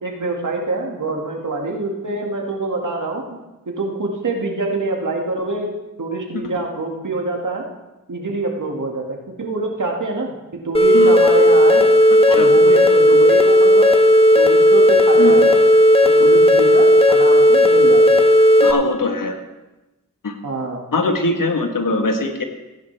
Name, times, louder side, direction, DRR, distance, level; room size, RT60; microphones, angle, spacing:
voice 1, 0.0-3.2 3.7-7.7 8.1-10.3 10.6-11.9 12.3-14.0 14.4-15.6 16.0-18.2 20.4-20.8, right 2 dB, 60° right, 0 dB, 2.3 m, -25 dB
sound 1, 10.7-18.7, equal, 15° left, 1.6 m, -12 dB
voice 2, 18.6-19.3 20.2-20.3 20.9-22.4, left 2 dB, 70° left, 4 dB, 1.6 m, -21 dB
16.0 x 10.0 x 3.5 m, 1.0 s
cardioid pair, 45°, 34 cm